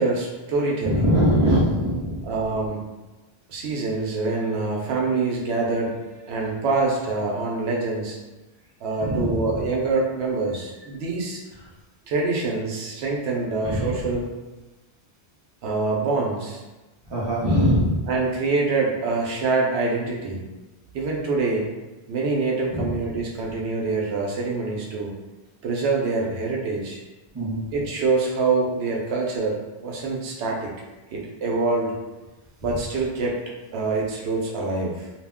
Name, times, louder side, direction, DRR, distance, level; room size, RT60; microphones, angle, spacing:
voice 1, 0.0-1.1 2.2-2.8 3.5-6.0 6.3-8.2 8.8-11.4 12.1-14.3 15.6-16.6 18.1-20.4 20.9-21.7 22.1-25.1 25.6-27.0 27.7-30.7 31.1-31.9 32.6-33.4 33.7-35.1, right 3 dB, 80° right, -2 dB, 0.9 m, -25 dB
voice 2, 0.8-2.3 9.0-9.6 13.6-14.1 17.0-18.0 22.7-23.0 27.3-27.6, equal, 30° right, -5 dB, 0.6 m, -22 dB
2.3 x 2.1 x 3.5 m, 1.1 s
omnidirectional pair, 1.1 m